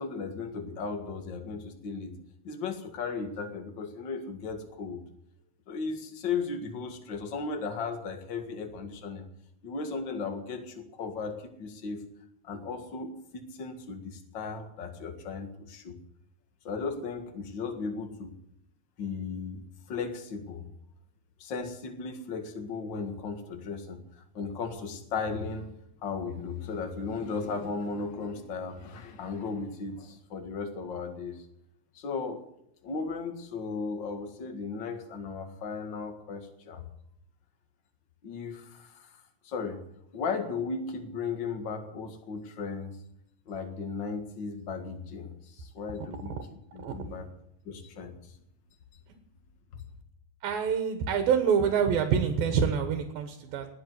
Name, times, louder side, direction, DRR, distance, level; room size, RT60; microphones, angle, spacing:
voice 1, 0.0-2.2 2.4-5.0 5.7-9.2 9.6-12.0 12.4-16.0 16.6-18.3 19.0-19.6 19.9-20.6 21.4-25.7 26.0-31.5 31.9-32.4 32.8-36.8 38.2-39.2 39.4-39.8 40.1-43.0 43.5-46.3 46.7-47.3 47.6-48.2, left 4 dB, 40° left, 6 dB, 1.9 m, -36 dB
voice 2, 46.0-46.3 46.8-47.0 49.1-49.2 50.4-53.7, right 7 dB, 80° right, 7 dB, 3.1 m, -27 dB
19.5 x 7.9 x 9.4 m, 0.75 s
omnidirectional pair, 4.1 m